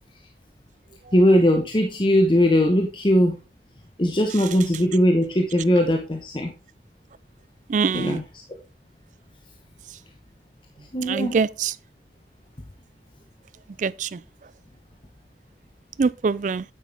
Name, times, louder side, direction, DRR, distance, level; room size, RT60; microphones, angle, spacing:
voice 1, 1.1-3.4 4.0-6.5 7.9-8.2 10.9-11.4, equal, 25° left, 1.0 m, -19 dB
voice 2, 7.7-8.2 11.1-11.7 13.8-14.2 16.0-16.6, right 5 dB, 45° right, 0.3 m, -23 dB
9.3 x 8.0 x 3.4 m
head